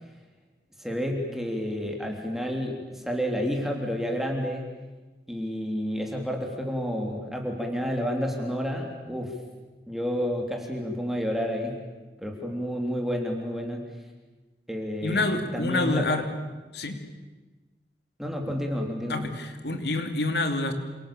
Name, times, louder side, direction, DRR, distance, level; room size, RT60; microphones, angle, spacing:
voice 1, 0.8-4.7 5.3-9.3 9.9-11.8 12.2-13.9 14.7-15.3 15.5-16.2 18.2-19.3, equal, ahead, 1 dB, 3.6 m, -30 dB
voice 2, 15.0-16.3 16.7-17.0 19.1-20.7, left 2 dB, 75° left, 6 dB, 2.9 m, -27 dB
29.0 x 27.0 x 7.1 m, 1.2 s
head